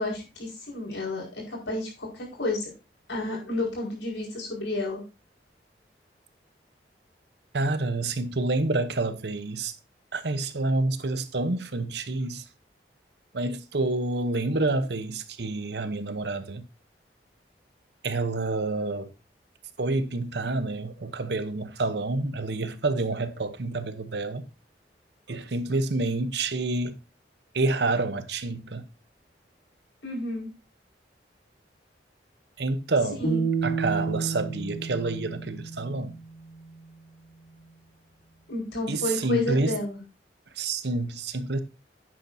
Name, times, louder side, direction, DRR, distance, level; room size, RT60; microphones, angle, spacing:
voice 1, 0.0-2.7 3.1-5.0 30.0-30.5 33.2-33.5 38.5-40.0, left 2 dB, 85° left, 4.9 m, -31 dB
voice 2, 7.5-9.7 10.1-12.5 13.3-16.7 18.0-19.1 19.8-24.5 25.3-27.0 27.5-28.8 32.6-33.3 33.6-36.2 38.9-39.8 40.5-41.6, right 2 dB, 70° right, 0.9 m, -28 dB
sound 1, 33.2-36.4, right 4 dB, 45° left, 2.0 m, -30 dB
10.5 x 8.7 x 2.7 m
head